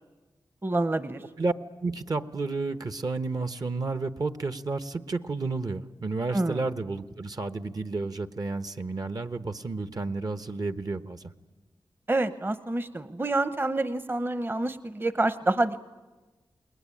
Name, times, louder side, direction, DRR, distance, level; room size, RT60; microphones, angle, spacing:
voice 1, 0.6-1.2 6.3-6.6 12.1-15.8, right 2 dB, 25° right, 12 dB, 0.9 m, -27 dB
voice 2, 1.8-11.3, right 3 dB, 50° right, 10 dB, 1.0 m, -31 dB
29.0 x 20.5 x 8.6 m, 1.2 s
wide cardioid pair, 70°, 8 cm